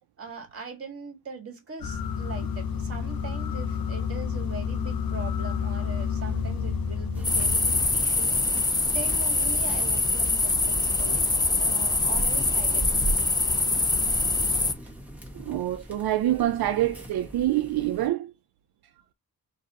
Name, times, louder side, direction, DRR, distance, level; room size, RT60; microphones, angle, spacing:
voice 1, 0.2-11.3 11.6-12.9, right 4 dB, 40° right, 1.8 m, -41 dB
sound 1, 1.8-7.9, left 6 dB, 70° left, 0.9 m, -30 dB
sound 2, 7.1-18.1, right 1 dB, 5° right, 1.5 m, -39 dB
sound 3, 7.2-14.7, left 3 dB, 10° left, 0.4 m, -24 dB
voice 2, 15.3-18.3, right 13 dB, 80° right, 0.6 m, -26 dB
4.7 x 2.7 x 4.1 m
wide cardioid pair, 120°, 37 cm